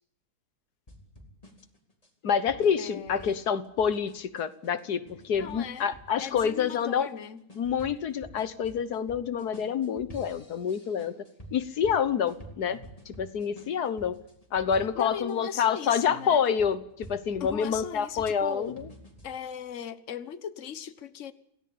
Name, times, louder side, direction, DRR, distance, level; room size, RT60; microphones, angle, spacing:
sound 1, 0.9-15.4 15.9-19.3, right 1 dB, 20° left, 4.2 m, -49 dB
voice 1, 2.2-7.1 7.5-11.1 11.5-12.8 13.1-14.2 14.5-18.9, left 7 dB, 80° left, 14 dB, 1.7 m, -27 dB
voice 2, 2.8-3.4 5.4-5.9 6.2-7.4 14.9-16.4 17.4-18.8 19.2-21.3, left 8 dB, 50° left, 13 dB, 1.5 m, -38 dB
28.0 x 18.0 x 8.7 m, 0.76 s
omnidirectional pair, 1.7 m